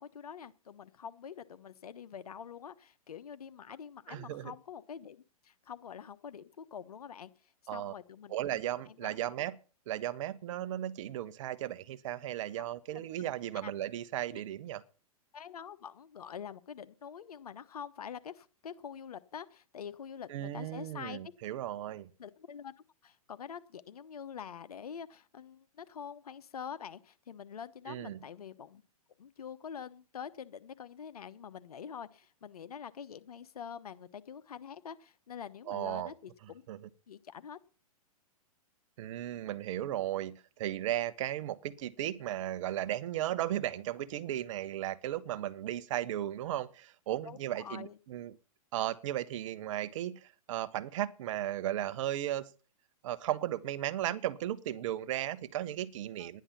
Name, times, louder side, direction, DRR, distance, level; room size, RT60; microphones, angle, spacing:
voice 1, 0.0-7.3 7.7-8.6 8.9-9.2 12.6-12.7 12.9-13.1 13.6-13.7 14.3-14.4 15.3-21.2 22.2-22.7 23.0-28.8 29.2-36.6 37.1-37.6 47.2-48.0 56.2-56.3, left 7 dB, 75° left, 1.1 m, -46 dB
voice 2, 4.1-4.5 7.7-7.9 8.3-9.6 9.9-14.8 20.3-22.1 27.9-28.2 35.7-36.1 36.7-36.9 39.0-48.3 48.7-52.5 53.0-56.4, right 12 dB, 55° right, 1.2 m, -35 dB
11.5 x 10.5 x 5.8 m
hypercardioid pair, 120°, 19 cm